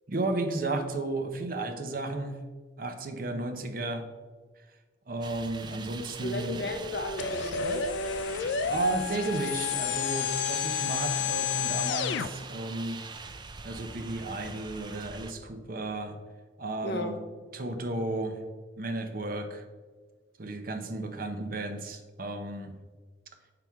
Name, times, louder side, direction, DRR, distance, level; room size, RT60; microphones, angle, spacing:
voice 1, 0.1-2.4 2.8-4.1 5.1-6.8 8.3-13.0 13.6-16.1 16.6-17.1 17.5-18.4 18.8-19.6 20.4-22.7, right 2 dB, 50° right, 6 dB, 0.7 m, -33 dB
sound 1, 5.2-15.3, right 4 dB, 25° right, 0.4 m, -44 dB
voice 2, 6.2-7.9 16.8-17.2, left 1 dB, 55° left, 4 dB, 0.9 m, -34 dB
sound 2, 7.2-12.3, left 7 dB, 75° left, 0.4 m, -30 dB
7.6 x 5.9 x 3.5 m, 1.4 s
head